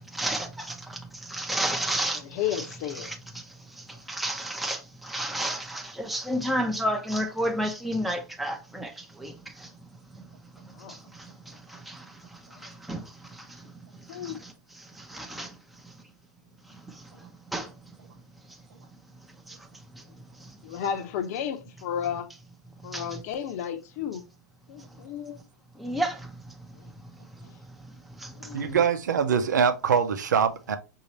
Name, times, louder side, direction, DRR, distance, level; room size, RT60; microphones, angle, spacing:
voice 1, 0.1-3.4 4.1-9.7 10.9-11.0 11.7-12.0 12.6-13.0 14.2-14.5 15.0-15.5 17.5-17.7 22.9-23.2 25.8-26.3 28.2-28.3, right 1 dB, ahead, 0.6 m, -31 dB
voice 2, 2.1-3.1 10.8-10.9 12.6-12.7 14.1-14.4 20.6-22.3 22.8-24.2 24.7-25.4 28.3-28.8, left 9 dB, 55° left, 0.8 m, -33 dB
voice 3, 28.5-30.8, right 7 dB, 80° right, 0.8 m, -23 dB
5.5 x 2.8 x 3.1 m
hypercardioid pair, 110°, 10 cm